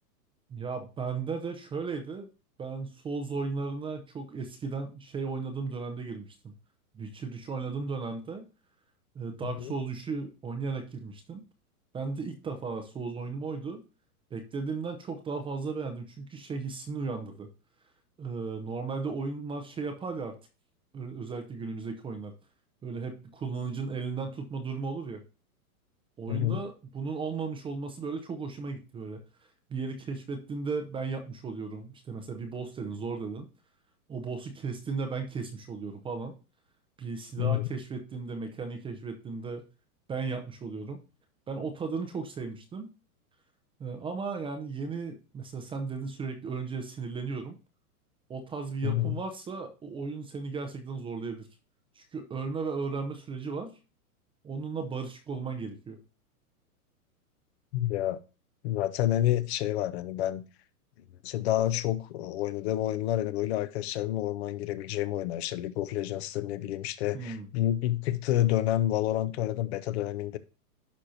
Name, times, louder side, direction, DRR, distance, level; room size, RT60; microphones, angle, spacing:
voice 1, 0.5-2.3 2.6-6.5 6.9-8.5 9.1-11.4 11.9-13.8 14.3-17.5 18.2-20.3 20.9-22.3 22.8-25.2 26.2-29.2 29.7-33.5 34.1-36.3 37.0-39.6 40.1-41.0 41.5-42.9 43.8-47.6 48.3-51.5 52.0-53.7 54.4-56.0 67.1-67.5, right 4 dB, 10° right, 6 dB, 0.6 m, -35 dB
voice 2, 26.3-26.6 37.4-37.7 48.8-49.2 57.7-58.2 58.6-60.4 61.2-70.4, left 13 dB, 45° left, 13 dB, 0.7 m, -29 dB
11.5 x 4.3 x 2.6 m, 0.32 s
hypercardioid pair, 135°, 46 cm